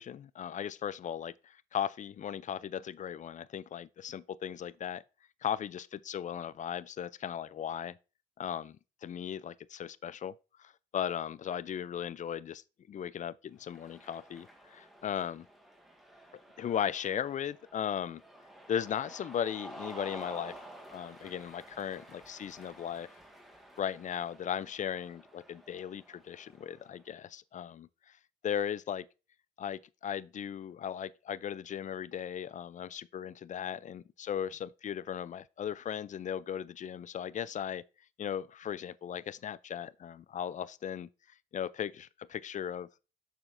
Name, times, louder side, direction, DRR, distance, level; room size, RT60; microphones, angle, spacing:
voice 1, 0.0-5.0 5.4-8.0 8.4-10.3 10.6-15.5 16.6-18.2 18.7-20.6 20.9-23.1 23.8-28.2 28.4-29.1 29.6-37.8 38.2-41.1 41.5-42.9, left 9 dB, 45° left, 0.4 m, -37 dB
Cheering, 13.6-27.0, right 1 dB, ahead, 1.6 m, -51 dB
6.8 x 5.6 x 2.6 m
cardioid pair, 75°, 19 cm